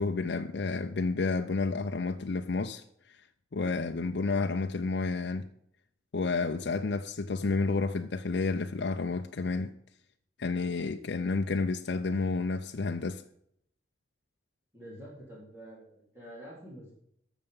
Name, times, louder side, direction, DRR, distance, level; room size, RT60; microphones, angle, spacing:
voice 1, 0.0-2.8 3.5-5.5 6.1-9.7 10.4-13.2, left 3 dB, 65° left, 0.5 m, -30 dB
voice 2, 14.7-16.9, equal, 15° right, 3.9 m, -47 dB
13.0 x 6.7 x 5.3 m
head